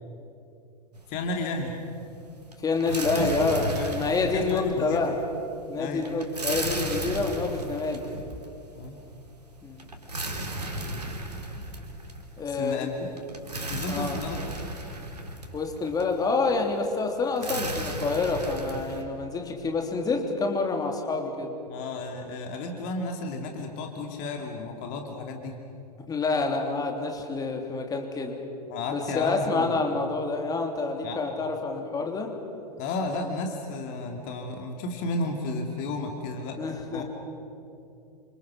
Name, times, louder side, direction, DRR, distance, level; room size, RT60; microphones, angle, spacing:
sound 1, 0.9-1.6 1.8-19.0, right 1 dB, 80° right, 3.1 m, -35 dB
voice 1, 1.1-1.7 3.0-3.3 3.7-5.0 5.7-6.0 8.7-9.0 12.5-13.1 13.7-14.4 21.7-25.6 28.7-29.7 31.0-31.2 32.8-36.6 36.9-37.0, left 2 dB, 40° left, 3 dB, 2.7 m, -33 dB
voice 2, 2.6-5.1 5.7-8.0 9.6-9.8 12.4-12.9 13.9-14.2 15.5-21.5 26.1-28.4 28.9-32.3 36.6-37.0, left 3 dB, 20° left, 3 dB, 3.2 m, -27 dB
29.0 x 27.0 x 6.3 m, 2.6 s
figure-of-eight pair, 95°, 20 cm